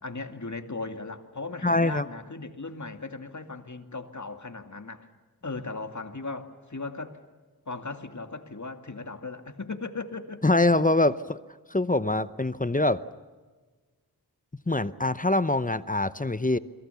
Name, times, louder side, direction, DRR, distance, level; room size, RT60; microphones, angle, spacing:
voice 1, 0.0-5.1 5.4-7.2 7.7-10.4, left 3 dB, 45° left, 7 dB, 2.3 m, -37 dB
voice 2, 1.6-2.1 10.4-11.4 11.7-13.0 14.7-16.6, left 2 dB, 20° left, 14 dB, 0.8 m, -24 dB
30.0 x 22.5 x 7.0 m, 1.4 s
wide cardioid pair, 55°, 38 cm